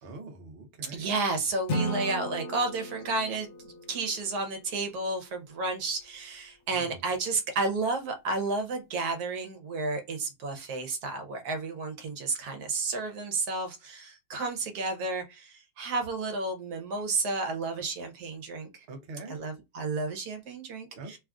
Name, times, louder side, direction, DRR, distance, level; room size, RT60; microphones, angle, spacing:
voice 1, 0.0-1.1 6.7-7.0 17.7-17.8 18.9-19.3 20.9-21.2, right 3 dB, 50° right, 0.8 m, -43 dB
voice 2, 0.9-3.5 3.9-18.7 19.3-21.2, right 3 dB, 75° right, 1.2 m, -32 dB
Acoustic guitar / Strum, 1.7-4.8, equal, 60° left, 0.8 m, -35 dB
3.1 x 2.3 x 2.3 m
omnidirectional pair, 1.7 m